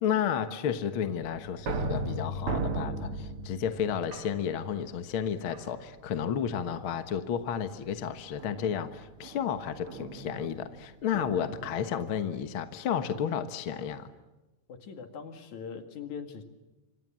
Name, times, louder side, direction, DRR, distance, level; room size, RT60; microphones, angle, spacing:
voice 1, 0.0-14.1, left 8 dB, 50° left, 9 dB, 1.9 m, -32 dB
sound 1, 1.2-5.0 5.5-6.1 6.5-6.9 8.4-11.8, right 2 dB, 50° right, 2.5 m, -37 dB
voice 2, 14.7-16.4, left 6 dB, 80° left, 7 dB, 3.6 m, -41 dB
27.0 x 26.0 x 7.6 m, 1.1 s
omnidirectional pair, 3.4 m